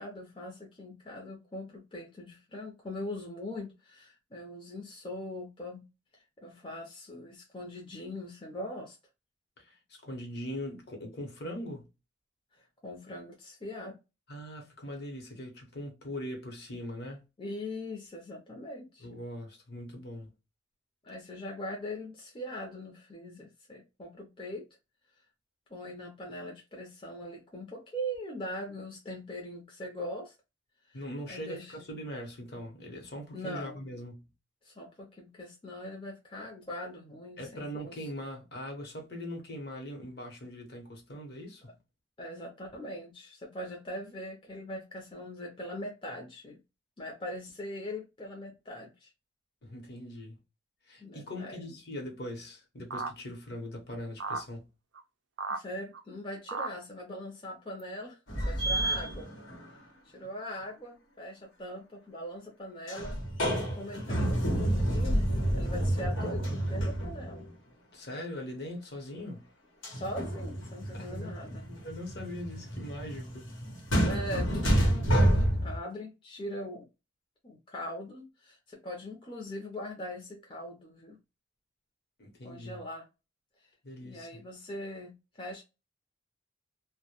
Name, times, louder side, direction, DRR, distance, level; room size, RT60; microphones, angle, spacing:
voice 1, 0.0-5.8 6.4-9.0 12.5-14.0 17.4-19.1 21.0-24.7 25.7-30.3 30.8-31.7 33.3-33.8 34.6-38.0 42.2-46.6 47.0-49.1 51.0-51.6 55.5-59.3 60.1-63.2 63.8-67.4 69.9-71.7 74.0-76.9 77.4-81.2 82.4-83.1 84.0-85.6, left 1 dB, 25° left, 0.5 m, -41 dB
voice 2, 9.6-11.9 14.3-17.2 19.0-20.3 30.9-34.3 37.4-41.7 49.6-50.4 50.9-54.7 67.9-69.5 70.8-71.3 71.7-73.5 82.2-82.8 83.8-84.4, equal, 55° left, 0.8 m, -41 dB
sound 1, 52.9-53.1 54.2-54.5 55.0-55.1 55.4-55.6 55.9-56.0 56.5-56.7 57.8-57.9 58.4-58.5, right 4 dB, 70° right, 0.4 m, -34 dB
sound 2, 58.3-59.8 62.9-67.5 69.8-75.8, right 1 dB, 90° left, 1.0 m, -29 dB
2.1 x 2.1 x 2.8 m
head